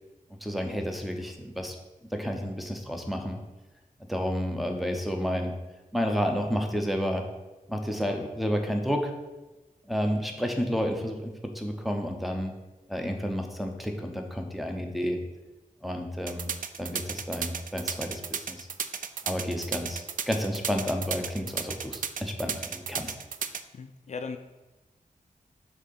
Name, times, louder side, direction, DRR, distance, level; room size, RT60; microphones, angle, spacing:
voice 1, 0.4-1.8 2.1-3.4 4.1-5.5 5.9-7.3 7.7-9.1 9.9-12.5 12.9-15.2 15.8-16.5 16.8-18.7 19.2-23.1, equal, ahead, 4 dB, 0.8 m, -30 dB
sound 1, 16.3-23.6, right 7 dB, 70° right, 0.4 m, -33 dB
voice 2, 23.7-24.4, left 5 dB, 55° left, 7 dB, 0.4 m, -37 dB
6.2 x 3.8 x 5.6 m, 1.1 s
wide cardioid pair, 120°, 14 cm